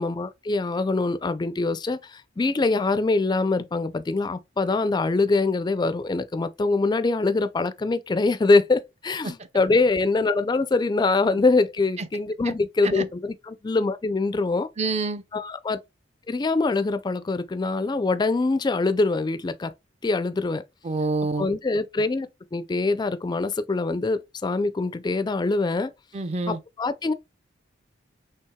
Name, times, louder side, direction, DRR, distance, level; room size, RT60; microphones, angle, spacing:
voice 1, 0.0-14.7 15.3-15.8 16.3-19.7 20.0-20.6 21.4-25.9 26.5-27.1, left 3 dB, 25° left, 0.3 m, -24 dB
voice 2, 14.8-15.2 20.8-21.5 26.1-26.6, right 3 dB, 35° right, 0.5 m, -27 dB
5.5 x 3.4 x 2.2 m
head